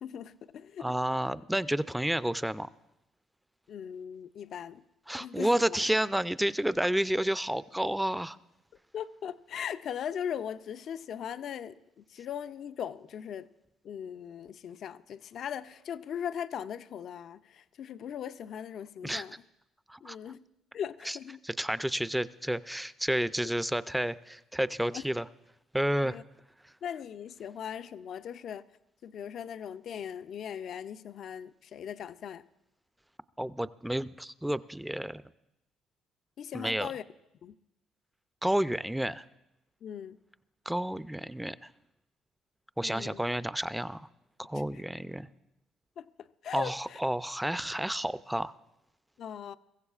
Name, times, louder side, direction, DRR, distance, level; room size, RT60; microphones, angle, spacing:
voice 1, 0.0-0.9 3.7-4.8 5.2-5.8 8.9-13.5 13.8-19.4 20.0-20.4 20.7-21.4 24.9-25.1 26.0-26.2 26.8-28.6 29.0-32.4 36.4-37.0 37.4-37.5 39.8-40.2 42.8-43.2 44.5-44.8 46.0-47.0 49.2-49.6, left 8 dB, 60° left, 0.5 m, -39 dB
voice 2, 0.8-2.7 5.1-8.4 19.0-19.2 19.9-20.2 21.1-21.2 21.4-25.3 25.7-26.2 26.6-26.7 33.4-35.2 36.5-36.9 38.4-39.2 40.7-41.7 42.8-44.1 44.4-45.3 46.5-48.5, right 1 dB, 5° right, 0.5 m, -30 dB
23.0 x 15.0 x 2.4 m
supercardioid pair, 70°, 0 cm